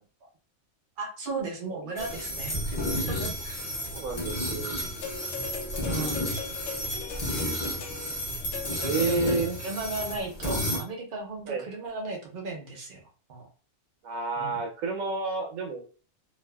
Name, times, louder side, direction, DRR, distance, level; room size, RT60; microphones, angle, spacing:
voice 1, 1.0-3.6 5.8-6.1 9.6-13.5 14.4-14.6, right 3 dB, 50° right, 0 dB, 0.7 m, -36 dB
voice 2, 1.7-2.1 3.9-4.8 8.7-9.6 10.5-10.6 11.5-11.7 14.0-15.8, right 3 dB, 80° right, 2 dB, 1.1 m, -30 dB
sound 1, 2.0-10.8, left 1 dB, 35° left, 0.7 m, -32 dB
sound 2, 5.0-9.8 10.7-10.8, left 7 dB, 75° left, 1.0 m, -40 dB
2.5 x 2.3 x 2.2 m, 0.38 s
omnidirectional pair, 1.5 m